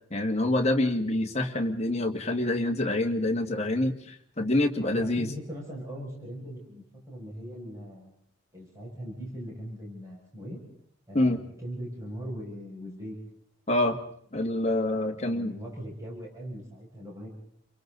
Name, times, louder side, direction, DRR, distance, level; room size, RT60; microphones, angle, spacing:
voice 1, 0.1-5.3 11.1-11.4 13.7-14.0 14.3-15.5, left 1 dB, 30° left, 3 dB, 1.9 m, -26 dB
voice 2, 4.8-8.1 8.5-10.6 11.1-13.2 15.3-17.4, equal, 15° right, -5 dB, 6.5 m, -40 dB
30.0 x 23.0 x 4.0 m, 0.65 s
head